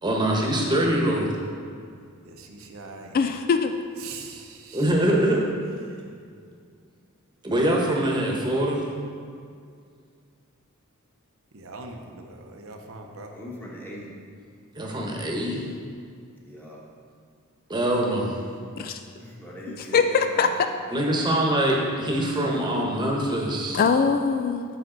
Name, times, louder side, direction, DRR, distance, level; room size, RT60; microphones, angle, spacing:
voice 1, 0.0-1.3 4.7-5.4 7.4-8.8 14.7-15.6 17.7-18.4 20.9-23.8, right 1 dB, 20° right, -1 dB, 1.2 m, -23 dB
voice 2, 2.4-3.4 4.0-5.1 11.5-13.3, right 3 dB, 65° right, 2 dB, 0.8 m, -42 dB
voice 3, 3.1-3.7 18.8-19.0 19.7-20.5 23.7-24.6, left 5 dB, 40° left, 8 dB, 0.3 m, -22 dB
voice 4, 13.3-14.1 16.4-16.8 19.2-20.7, equal, 10° left, -4 dB, 1.3 m, -40 dB
9.1 x 6.6 x 3.9 m, 2.2 s
head